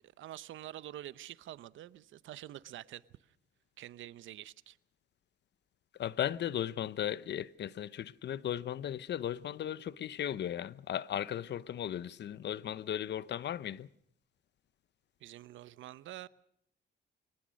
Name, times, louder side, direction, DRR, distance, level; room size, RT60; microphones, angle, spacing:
voice 1, 0.2-3.0 3.8-4.8 15.2-16.3, right 13 dB, 75° right, 0.9 m, -47 dB
voice 2, 6.0-13.9, left 10 dB, 60° left, 0.8 m, -36 dB
24.0 x 18.5 x 6.4 m
cardioid pair, 90°, 20 cm